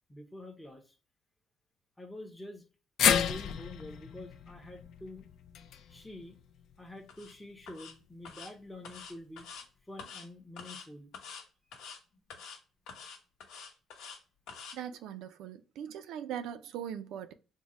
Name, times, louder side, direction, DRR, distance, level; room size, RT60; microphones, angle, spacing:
voice 1, 0.1-1.0 2.0-2.6 3.1-5.2 5.9-6.4 6.8-9.5 9.9-11.1 11.7-11.9, left 1 dB, 5° left, 0.5 m, -47 dB
sound 1, 3.0-7.3 7.6-7.7 8.9-9.0, left 8 dB, 65° left, 0.3 m, -32 dB
sound 2, 7.1-7.3 7.7-7.9 8.2-8.5 8.8-9.6 10.0-10.3 10.6-10.9 11.1-11.4 11.7-12.0 12.3-12.6 12.9-14.2 14.5-14.8, left 5 dB, 90° left, 0.9 m, -46 dB
voice 2, 14.7-17.3, right 9 dB, 80° right, 0.4 m, -40 dB
3.5 x 2.1 x 4.0 m
cardioid pair, 145°, 0 cm